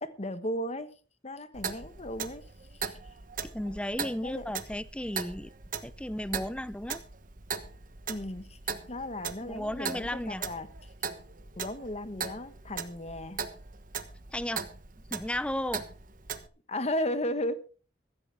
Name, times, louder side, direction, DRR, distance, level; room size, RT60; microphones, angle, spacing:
voice 1, 0.0-0.9 1.2-2.4 2.8-2.9 4.2-4.4 8.1-8.6 8.9-10.7 11.6-13.4 16.7-17.5, left 1 dB, 35° left, 1.2 m, -35 dB
Clock, 1.5-16.5, right 6 dB, 45° right, 1.2 m, -39 dB
voice 2, 3.4-5.5 5.8-7.0 9.4-10.4 14.3-14.6 15.1-15.8, left 1 dB, 5° left, 0.6 m, -34 dB
15.0 x 14.5 x 3.5 m
head